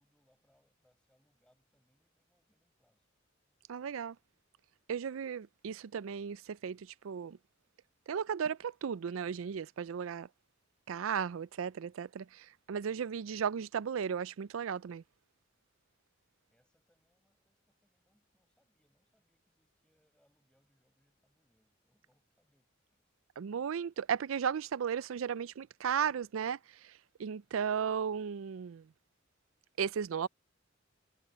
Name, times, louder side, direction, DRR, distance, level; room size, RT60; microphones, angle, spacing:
voice 1, 0.0-3.1 16.5-23.1, equal, 5° left, 5.8 m, -76 dB
voice 2, 3.7-4.2 4.9-7.4 8.1-10.3 10.9-15.0 23.4-26.6 26.8-26.9 27.2-28.8 29.8-30.3, right 7 dB, 85° right, 0.4 m, -35 dB
head